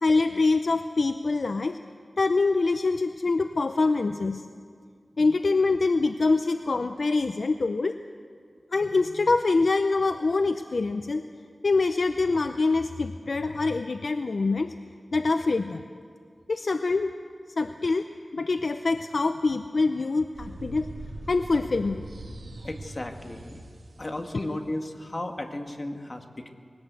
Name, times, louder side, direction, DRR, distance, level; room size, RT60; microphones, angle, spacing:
voice 1, 0.0-1.8 2.2-4.5 5.2-8.0 8.7-11.2 11.6-14.7 15.1-15.8 16.5-17.1 17.6-18.1 18.3-20.9 21.3-22.0, left 3 dB, 60° left, 8 dB, 0.6 m, -25 dB
sound 1, 20.3-24.3, right 2 dB, 80° right, 2.9 m, -41 dB
voice 2, 22.6-23.6 24.0-26.5, left 1 dB, 35° left, 4 dB, 1.9 m, -34 dB
21.5 x 17.5 x 8.2 m, 2.1 s
wide cardioid pair, 85°, 0 cm